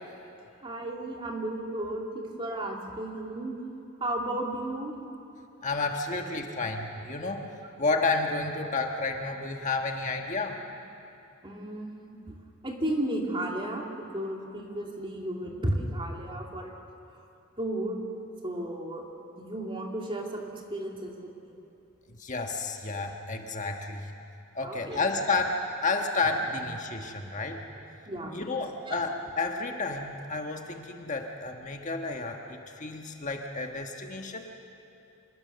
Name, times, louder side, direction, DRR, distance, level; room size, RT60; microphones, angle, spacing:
voice 1, 0.6-3.5 4.0-4.9 11.4-12.3 12.6-16.7 17.6-18.0 18.4-19.0 19.3-21.6 24.6-25.0 27.8-28.5 28.9-29.0, right 1 dB, 25° right, 0 dB, 2.7 m, -34 dB
voice 2, 5.6-7.5 7.8-10.6 22.1-24.1 24.5-27.6 28.3-34.5, left 3 dB, 35° left, 3 dB, 1.4 m, -31 dB
25.5 x 21.5 x 6.9 m, 2.7 s
head